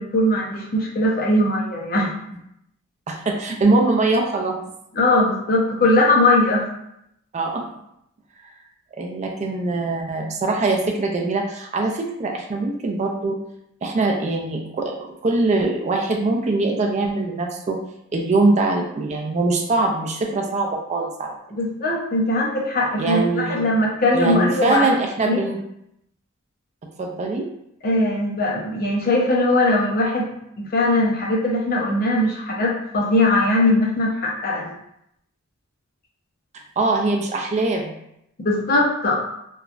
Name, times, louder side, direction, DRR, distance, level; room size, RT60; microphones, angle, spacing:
voice 1, 0.0-2.1 4.9-6.7 21.5-25.4 27.8-30.3 30.6-34.7 38.4-39.1, left 1 dB, 45° left, -2 dB, 0.6 m, -20 dB
voice 2, 3.1-4.6 7.3-7.7 9.0-13.4 13.8-17.8 18.1-21.3 23.0-23.6 24.1-25.6 27.0-27.5 36.5-37.9, right 3 dB, 35° right, 2 dB, 0.3 m, -22 dB
3.0 x 2.3 x 2.4 m, 0.78 s
head